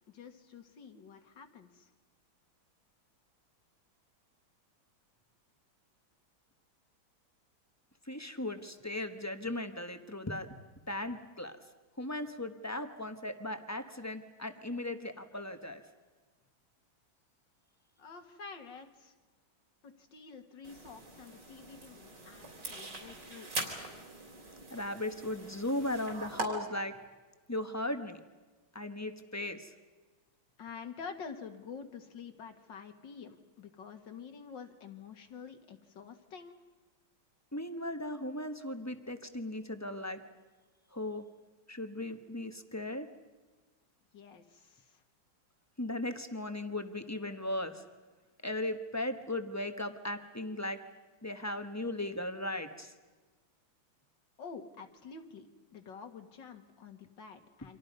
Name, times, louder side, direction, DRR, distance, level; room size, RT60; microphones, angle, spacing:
voice 1, 0.1-1.9 18.0-19.1 19.8-24.1 30.6-36.6 44.1-45.0 54.4-57.8, left 5 dB, 65° left, 7 dB, 2.4 m, -48 dB
voice 2, 8.0-10.5 10.9-11.6 12.0-15.8 24.7-26.9 27.5-28.2 28.7-29.7 37.5-40.2 40.9-41.2 41.7-43.1 45.8-47.8 48.4-50.8 51.2-52.9, left 1 dB, 10° left, 7 dB, 0.9 m, -37 dB
sound 1, 20.6-26.5, right 2 dB, 60° right, 4.3 m, -42 dB
29.0 x 25.5 x 5.4 m, 1.3 s
omnidirectional pair, 2.2 m